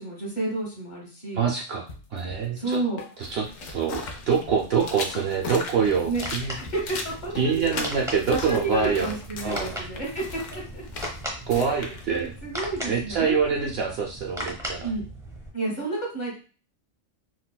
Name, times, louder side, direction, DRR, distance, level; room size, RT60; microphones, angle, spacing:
voice 1, 0.0-1.4 2.5-3.0 6.1-6.3 6.6-10.8 11.5-13.7 14.8-15.0 15.5-16.4, right 3 dB, 40° left, -3 dB, 1.1 m, -31 dB
voice 2, 1.3-1.9 2.1-2.8 3.2-6.6 7.4-9.1 9.4-9.8 11.5-12.3 12.9-14.9, right 6 dB, 65° right, 0 dB, 0.7 m, -25 dB
sound 1, 1.9-3.6 3.8-10.6, left 3 dB, 70° left, 0.4 m, -44 dB
sound 2, 3.2-13.2, left 3 dB, 85° left, 1.0 m, -38 dB
sound 3, 5.9-15.5, equal, 5° right, 0.5 m, -38 dB
3.9 x 2.2 x 2.2 m, 0.36 s
omnidirectional pair, 1.3 m